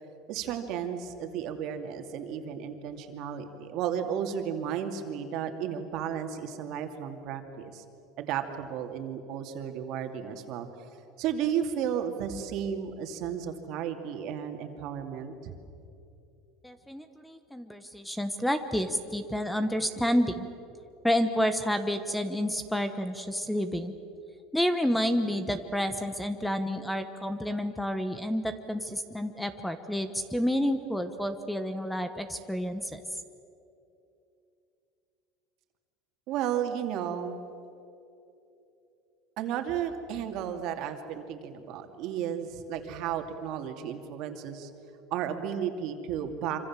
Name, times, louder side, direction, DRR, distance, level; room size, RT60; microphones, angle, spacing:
voice 1, 0.3-7.8 8.2-10.7 11.2-15.5 36.3-37.4 39.4-44.7 45.1-46.6, right 9 dB, 55° right, 5 dB, 2.7 m, -33 dB
voice 2, 16.6-20.5 21.0-23.9 24.5-33.0, equal, 5° left, 10 dB, 1.1 m, -29 dB
26.0 x 25.5 x 7.5 m, 2.8 s
supercardioid pair, 135°, 0 cm